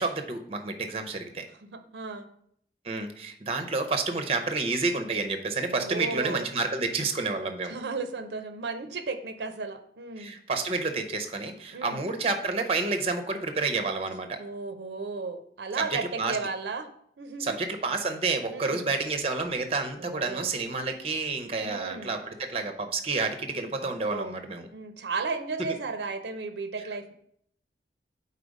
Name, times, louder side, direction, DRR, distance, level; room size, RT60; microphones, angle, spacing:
voice 1, 0.0-1.4 2.8-7.8 10.2-14.4 15.8-16.4 17.4-24.7, right 3 dB, 35° right, 6 dB, 0.6 m, -29 dB
voice 2, 1.6-2.3 5.7-6.5 7.7-10.3 11.7-12.1 14.4-16.9 17.2-17.6 18.5-18.9 20.0-20.5 21.6-22.1 23.8-24.3 24.7-27.1, right 4 dB, 75° right, 7 dB, 0.5 m, -35 dB
4.9 x 4.2 x 5.1 m, 0.67 s
head